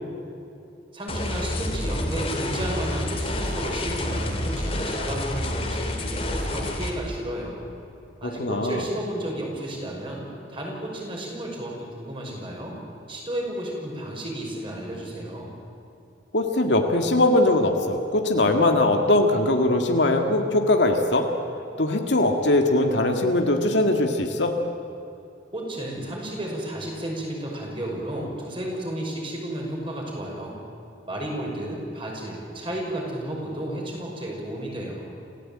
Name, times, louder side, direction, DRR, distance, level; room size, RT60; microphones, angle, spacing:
voice 1, 0.9-7.7 8.2-12.8 13.1-15.5 25.5-30.6 31.0-35.1, right 1 dB, 30° right, -1 dB, 5.7 m, -32 dB
sound 1, 1.1-6.9, left 1 dB, 30° left, 2.8 m, -28 dB
voice 2, 8.4-8.8 16.3-21.2 21.8-24.5, left 2 dB, 80° left, 4 dB, 2.0 m, -21 dB
28.0 x 16.0 x 8.8 m, 2.7 s
head